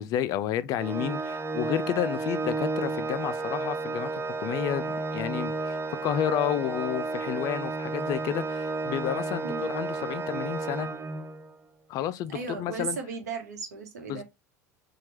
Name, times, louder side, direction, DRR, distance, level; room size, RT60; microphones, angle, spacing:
voice 1, 0.0-10.9 11.9-13.0 14.1-14.2, left 11 dB, 40° left, 0.4 m, -31 dB
Organ, 0.8-11.5, right 3 dB, 25° right, 0.7 m, -32 dB
voice 2, 12.3-14.2, right 5 dB, 70° right, 1.0 m, -36 dB
4.4 x 2.3 x 2.9 m
figure-of-eight pair, 75°, 9 cm